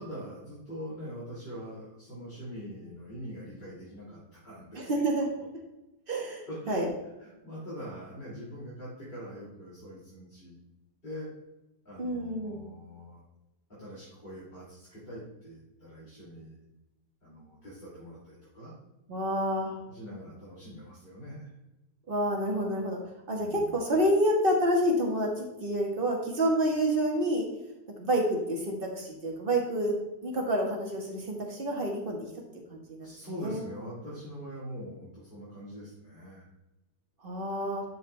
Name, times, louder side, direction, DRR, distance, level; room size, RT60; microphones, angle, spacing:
voice 1, 0.0-4.9 5.3-5.5 6.5-6.8 7.2-10.5 11.0-11.3 11.8-13.2 13.7-16.6 17.2-18.7 19.9-21.5 23.3-24.0 33.0-36.5, equal, 25° left, -9 dB, 3.2 m, -43 dB
voice 2, 4.8-5.3 6.1-6.9 12.0-12.7 19.1-19.7 22.1-23.0 23.3-27.5 28.0-32.2 32.7-33.1 33.4-33.6 37.2-37.8, right 1 dB, 35° right, 0 dB, 1.7 m, -28 dB
13.0 x 4.7 x 3.4 m, 0.99 s
omnidirectional pair, 1.8 m